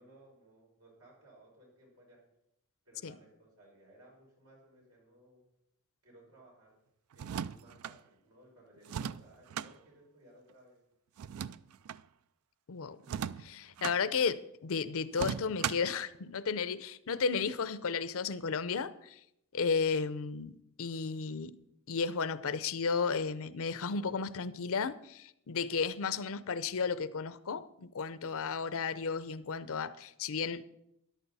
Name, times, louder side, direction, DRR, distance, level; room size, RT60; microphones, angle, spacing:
voice 1, 0.0-2.2 2.8-5.4 6.0-6.8 7.1-10.8 13.0-13.2, right 1 dB, 90° right, 5.7 m, -60 dB
sound 1, 7.1-8.0 8.9-9.7 11.2-12.0 13.0-14.0 15.1-16.0, right 8 dB, 70° right, 0.4 m, -37 dB
voice 2, 12.7-13.0 13.4-19.2 19.5-21.6 21.9-30.6, left 5 dB, 65° left, 0.6 m, -33 dB
13.5 x 11.0 x 4.1 m
head